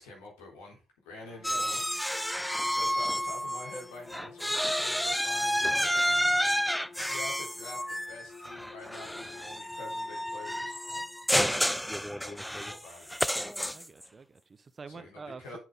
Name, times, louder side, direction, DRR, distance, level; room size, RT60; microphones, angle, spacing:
voice 1, 0.0-1.9 2.3-5.9 6.9-10.8 12.1-13.1 14.9-15.6, left 2 dB, 80° left, 3.8 m, -47 dB
sound 1, 1.2-11.4, left 4 dB, 45° left, 1.6 m, -51 dB
sound 2, 1.4-3.8 4.1-14.0, equal, 5° left, 0.5 m, -30 dB
voice 2, 1.5-1.8 13.7-15.6, right 4 dB, 40° right, 1.0 m, -47 dB
10.0 x 6.4 x 3.7 m
hypercardioid pair, 40°, 0 cm